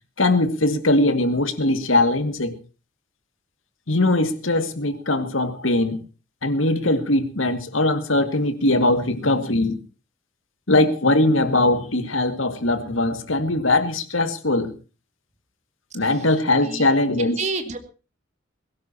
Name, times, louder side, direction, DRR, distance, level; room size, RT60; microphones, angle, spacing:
voice 1, 0.2-2.6 3.9-6.0 6.4-9.8 10.7-14.7 15.9-17.4, left 2 dB, 80° left, 9 dB, 2.0 m, -21 dB
voice 2, 17.2-17.8, right 4 dB, 35° right, 7 dB, 2.2 m, -30 dB
21.0 x 17.5 x 2.9 m, 0.34 s
head